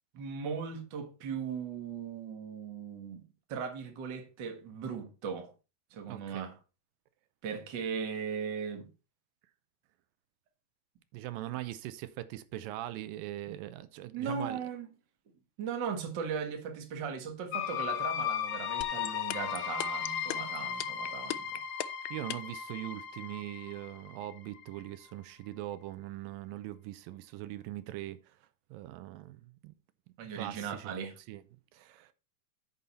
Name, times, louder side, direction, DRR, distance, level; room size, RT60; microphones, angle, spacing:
voice 1, 0.1-3.2 3.5-5.5 5.9-6.5 7.4-8.9 14.1-14.9 15.6-21.6 30.2-31.1, right 6 dB, 45° right, 1.5 m, -38 dB
voice 2, 6.1-6.5 11.1-14.6 22.1-28.4 28.7-29.7 30.3-30.9 31.3-31.4 31.7-32.1, right 15 dB, 85° right, 2.4 m, -41 dB
sound 1, 17.5-25.1, left 9 dB, 70° left, 1.7 m, -36 dB
sound 2, 18.8-22.6, left 16 dB, 85° left, 2.3 m, -35 dB
9.5 x 5.5 x 4.2 m
omnidirectional pair, 4.0 m